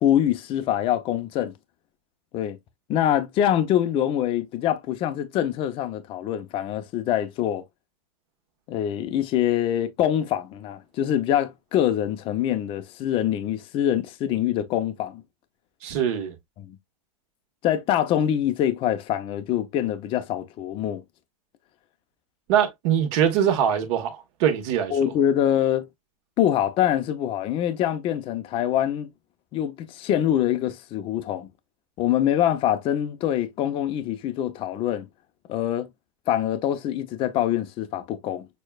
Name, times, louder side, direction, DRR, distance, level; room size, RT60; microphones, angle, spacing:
voice 1, 0.0-1.5 2.3-2.6 2.9-7.6 8.7-15.2 16.6-16.8 17.6-21.0 24.9-25.9 26.4-29.1 29.5-31.5 32.0-35.1 35.5-35.9 36.3-38.4, left 11 dB, 30° left, 0.6 m, -24 dB
voice 2, 15.8-16.4 22.5-24.9, right 9 dB, 50° right, 1.3 m, -23 dB
6.4 x 2.3 x 2.3 m
supercardioid pair, 145°, 19 cm